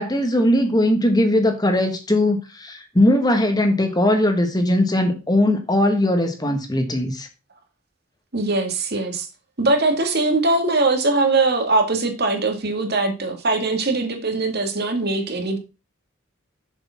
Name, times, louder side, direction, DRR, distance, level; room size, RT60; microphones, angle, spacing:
voice 1, 0.0-7.3, left 1 dB, 20° left, 1.4 m, -19 dB
voice 2, 8.3-9.3 9.6-15.6, right 2 dB, 50° right, 2.1 m, -21 dB
7.2 x 7.0 x 5.8 m
head